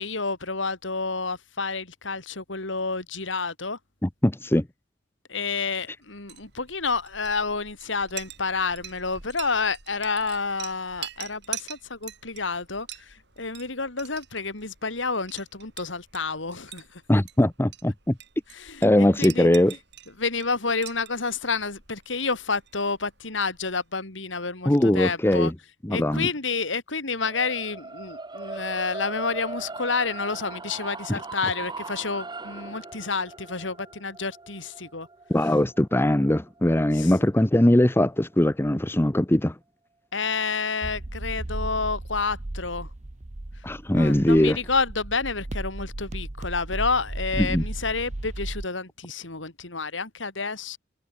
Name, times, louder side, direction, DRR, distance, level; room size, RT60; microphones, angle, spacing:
voice 1, 0.0-3.8 5.3-17.0 18.5-19.5 20.2-25.5 25.9-35.1 36.9-37.1 40.1-42.9 43.6-43.7 43.9-50.8, left 4 dB, 80° left, 3.3 m, -29 dB
voice 2, 4.0-4.7 17.1-18.2 18.8-19.7 24.7-25.5 25.8-26.3 31.1-31.2 35.3-39.5 43.6-44.6 47.4-47.6, left 1 dB, 10° left, 0.8 m, -21 dB
Chink clink, 6.1-23.9, right 11 dB, 65° right, 6.3 m, -44 dB
sound 1, 27.2-37.4, right 3 dB, 25° right, 1.6 m, -39 dB
sound 2, 40.8-48.6, right 1 dB, 40° right, 1.0 m, -35 dB
head